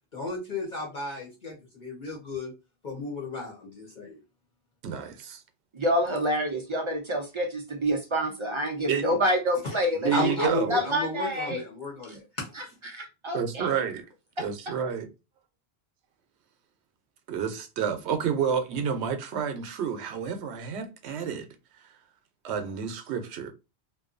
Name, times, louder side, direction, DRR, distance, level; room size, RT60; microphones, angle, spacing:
voice 1, 0.1-2.5 2.8-4.2 9.6-9.8 10.1-12.5, left 2 dB, 50° left, 0.9 m, -33 dB
voice 2, 4.8-5.4 8.9-9.2 9.9-10.8 13.3-14.1 14.4-15.1 17.3-21.5 21.8-21.9 22.4-23.5, right 7 dB, 90° right, 0.9 m, -30 dB
voice 3, 5.7-10.3 10.7-11.6 12.1-12.2 12.6-13.7 14.4-14.5, equal, 50° right, 0.3 m, -28 dB
2.6 x 2.2 x 2.4 m
omnidirectional pair, 1.1 m